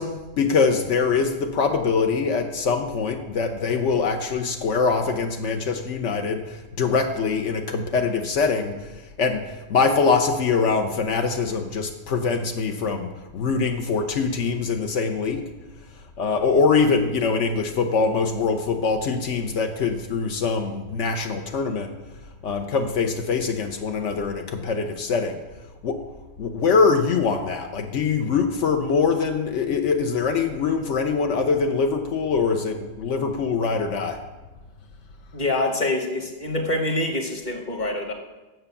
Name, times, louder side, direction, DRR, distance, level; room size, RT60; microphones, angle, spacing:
voice 1, 0.0-15.5 16.2-21.9 22.4-25.4 25.8-26.0 26.4-34.2, left 5 dB, 75° left, 5 dB, 1.1 m, -23 dB
voice 2, 35.3-38.1, left 2 dB, 40° left, 3 dB, 1.4 m, -25 dB
7.7 x 6.8 x 7.0 m, 1.1 s
omnidirectional pair, 1.3 m